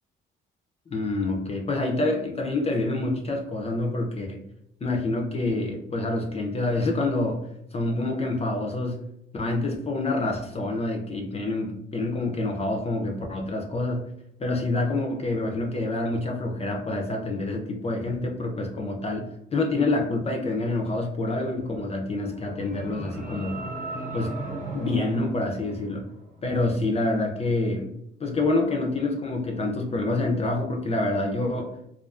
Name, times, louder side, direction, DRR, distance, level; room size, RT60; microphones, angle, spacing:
voice 1, 0.9-4.4 4.8-9.1 9.3-14.1 14.4-23.6 24.1-24.4 24.7-26.0 26.4-27.9 28.2-31.8, left 2 dB, 30° left, 2 dB, 0.4 m, -27 dB
sound 1, 22.2-26.4, right 2 dB, 40° right, 0.8 m, -37 dB
2.4 x 2.4 x 2.3 m, 0.77 s
cardioid pair, 90°, 20 cm